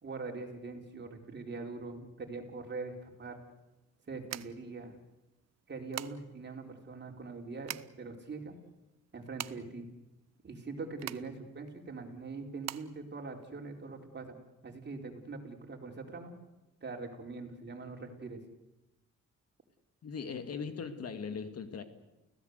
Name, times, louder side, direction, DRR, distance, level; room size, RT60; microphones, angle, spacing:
voice 1, 0.0-3.4 4.1-5.0 5.7-8.6 9.1-9.8 10.4-14.3 14.6-16.3 16.8-18.4, right 3 dB, 35° right, 2 dB, 4.5 m, -43 dB
sound 1, 2.9-14.0, right 12 dB, 60° right, 0.8 m, -46 dB
voice 2, 20.0-21.8, left 6 dB, 55° left, 9 dB, 2.1 m, -39 dB
29.5 x 16.5 x 8.2 m, 1.0 s
cardioid pair, 90°, 30 cm